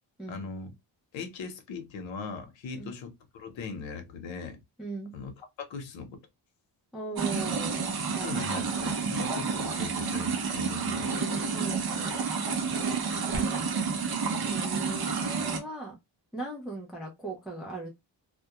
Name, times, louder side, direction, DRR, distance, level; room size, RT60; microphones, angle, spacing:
voice 1, 0.3-0.7 1.1-4.6 5.1-5.3 5.6-6.2 8.2-11.1, left 5 dB, 75° left, 0.8 m, -39 dB
voice 2, 4.8-5.1 6.9-7.8 8.1-8.6 11.5-12.2 14.4-16.0 16.3-17.9, right 3 dB, ahead, 0.3 m, -38 dB
sound 1, 7.2-15.6, right 5 dB, 55° right, 0.7 m, -30 dB
2.2 x 2.1 x 2.7 m
wide cardioid pair, 175°, 46 cm